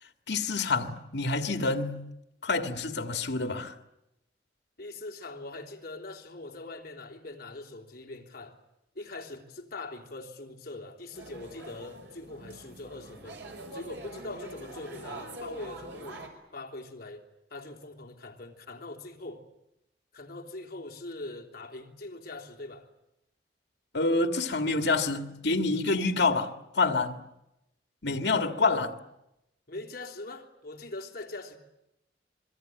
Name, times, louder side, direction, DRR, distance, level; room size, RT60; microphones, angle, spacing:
voice 1, 0.3-2.1 2.4-3.7 23.9-27.3 28.0-29.0, left 3 dB, 75° left, 1.9 m, -27 dB
voice 2, 4.8-8.6 9.0-13.4 13.7-16.3 16.5-17.2 17.5-19.4 20.1-22.9 29.7-31.6, left 2 dB, 55° left, 3.4 m, -42 dB
sound 1, 11.1-16.3, right 1 dB, 85° right, 5.6 m, -44 dB
26.5 x 22.5 x 9.1 m
head